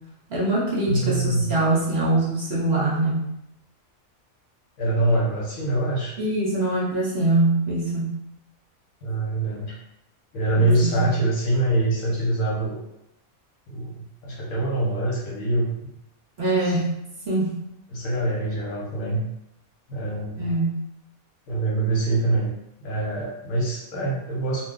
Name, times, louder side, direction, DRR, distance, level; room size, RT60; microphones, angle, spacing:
voice 1, 0.3-3.2 6.2-8.2 10.6-11.2 16.4-17.0 17.3-17.6 20.4-20.8, right 2 dB, 60° right, -4 dB, 0.7 m, -23 dB
voice 2, 0.9-1.5 4.8-6.1 9.0-9.8 10.3-12.8 13.7-14.0 14.2-15.7 16.6-16.7 17.9-19.2 19.9-20.5 21.5-22.5 22.8-24.6, right 2 dB, 70° left, -4 dB, 1.2 m, -24 dB
2.5 x 2.2 x 3.7 m, 0.83 s
omnidirectional pair, 1.5 m